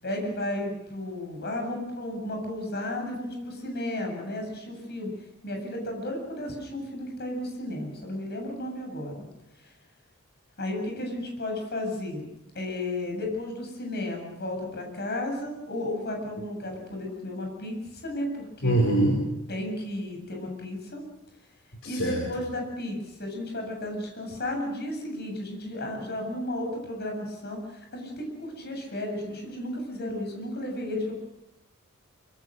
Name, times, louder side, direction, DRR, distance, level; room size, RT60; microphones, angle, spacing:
voice 1, 0.0-5.1 5.4-9.3 9.6-9.7 10.6-12.2 12.5-18.8 19.5-21.0 21.8-31.2, left 1 dB, 50° left, 2 dB, 7.9 m, -33 dB
voice 2, 18.6-19.2 21.8-22.2, right 1 dB, 65° left, 0 dB, 5.1 m, -23 dB
25.0 x 24.5 x 6.5 m, 0.90 s
head